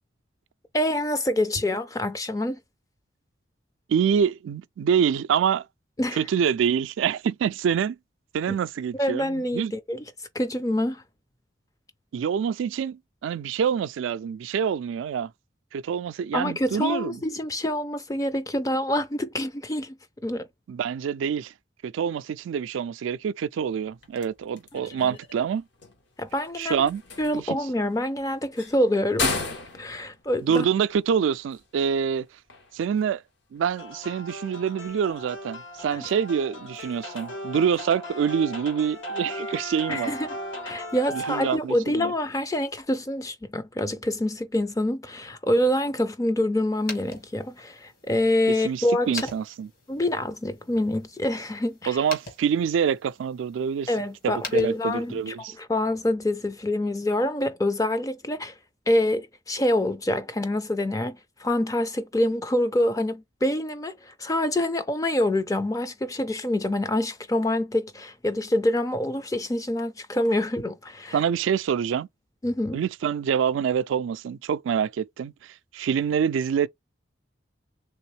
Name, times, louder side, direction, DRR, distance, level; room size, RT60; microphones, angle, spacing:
voice 1, 0.7-2.6 6.0-6.2 9.0-10.0 10.3-11.0 16.3-20.0 20.2-20.5 25.0-25.2 26.2-26.8 27.2-29.4 29.7-30.7 39.9-40.4 40.6-49.2 49.9-52.0 53.9-58.6 58.9-71.2 72.4-72.8, left 1 dB, 15° left, 0.4 m, -26 dB
voice 2, 3.9-5.6 6.1-8.0 8.3-9.7 12.1-15.3 15.7-17.2 20.7-21.5 21.8-25.6 26.6-27.0 27.3-27.6 30.4-32.3 32.7-33.2 33.5-40.1 41.1-42.1 48.6-49.7 51.9-53.9 54.2-55.5 71.1-72.1 72.7-76.7, right 7 dB, 80° right, 0.3 m, -26 dB
sound 1, 23.7-43.2, left 4 dB, 65° left, 1.0 m, -40 dB
sound 2, 33.8-41.6, equal, 80° left, 1.2 m, -37 dB
sound 3, 46.7-55.4, left 3 dB, 45° left, 1.3 m, -44 dB
3.4 x 3.1 x 3.1 m
head